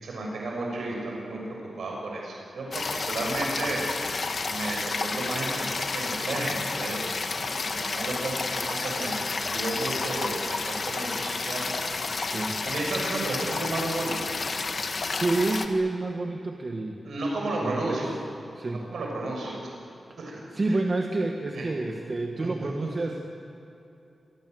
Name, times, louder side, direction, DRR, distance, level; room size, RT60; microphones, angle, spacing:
voice 1, 0.0-3.8 4.5-7.1 7.6-9.2 9.5-11.7 12.6-14.2 17.0-18.1 18.9-19.7 20.2-20.3 21.5-21.6 22.4-23.1, right 2 dB, 90° right, -1 dB, 6.6 m, -33 dB
sound 1, 2.7-15.7, left 3 dB, 45° left, 1.8 m, -31 dB
voice 2, 12.3-12.6 15.1-17.0 17.6-18.1 18.6-18.9 20.2-23.3, right 2 dB, 35° right, 2 dB, 1.7 m, -29 dB
27.5 x 23.5 x 8.0 m, 2.8 s
wide cardioid pair, 150°, 0 cm